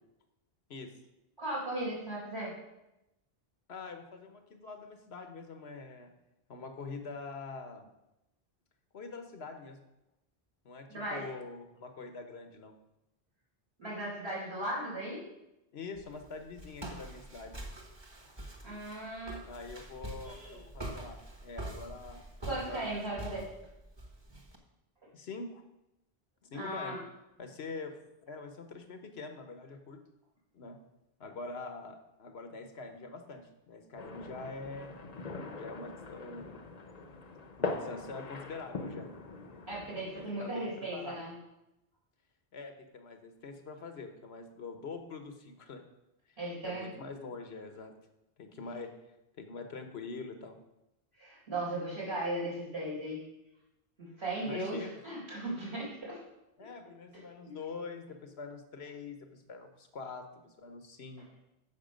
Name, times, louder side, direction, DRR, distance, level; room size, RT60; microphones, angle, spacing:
voice 1, 1.4-2.5 10.9-11.3 13.8-15.2 18.6-19.4 20.2-20.6 22.4-23.4 26.5-27.0 39.7-41.3 46.4-46.9 51.2-53.2 54.0-56.2, right 1 dB, 80° right, -6 dB, 4.2 m, -37 dB
voice 2, 3.7-6.1 6.5-7.9 8.9-9.8 10.6-12.7 15.7-17.5 19.4-22.2 22.6-23.2 25.1-25.6 26.5-27.0 27.4-28.0 28.3-30.0 30.5-30.8 31.2-34.9 35.6-36.8 37.6-39.1 40.2-41.3 42.5-45.8 46.3-46.4 46.6-47.9 48.4-48.9 49.4-50.6 54.4-55.0 56.6-61.3, left 4 dB, 85° left, 6 dB, 1.3 m, -44 dB
Walk footsteps, 15.9-24.6, right 1 dB, 25° right, 1.2 m, -45 dB
sound 1, 34.0-40.3, left 3 dB, 45° left, 0.8 m, -41 dB
9.5 x 6.9 x 5.2 m, 0.91 s
omnidirectional pair, 1.1 m